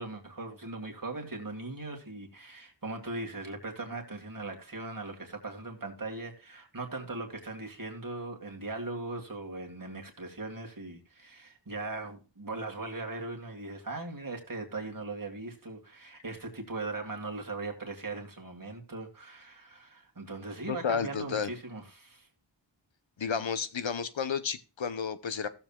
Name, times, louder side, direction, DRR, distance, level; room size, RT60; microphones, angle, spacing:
voice 1, 0.0-22.3, right 2 dB, 45° right, 2.1 m, -39 dB
voice 2, 20.7-21.5 23.2-25.5, left 6 dB, 80° left, 0.9 m, -32 dB
16.5 x 7.2 x 2.4 m
wide cardioid pair, 55°, 45 cm